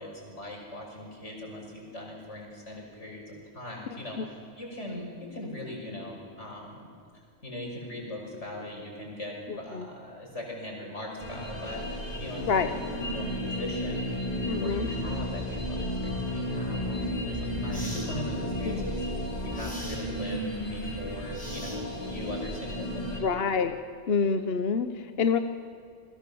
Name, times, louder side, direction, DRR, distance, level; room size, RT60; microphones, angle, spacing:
voice 1, 0.0-6.9 7.4-14.1 14.6-19.0 19.4-23.3, left 1 dB, 90° left, 0 dB, 6.2 m, -40 dB
voice 2, 9.5-9.9 12.5-12.7 14.5-14.9 18.7-18.8 23.2-23.8 24.1-25.4, left 5 dB, 60° left, 8 dB, 1.1 m, -27 dB
sound 1, 11.2-23.2, equal, 35° left, 4.4 m, -33 dB
sound 2, 16.9-17.0 17.7-18.1 19.5-20.0 21.3-22.1, equal, 5° left, 5.0 m, -42 dB
29.0 x 22.0 x 7.0 m, 2.3 s
omnidirectional pair, 1.2 m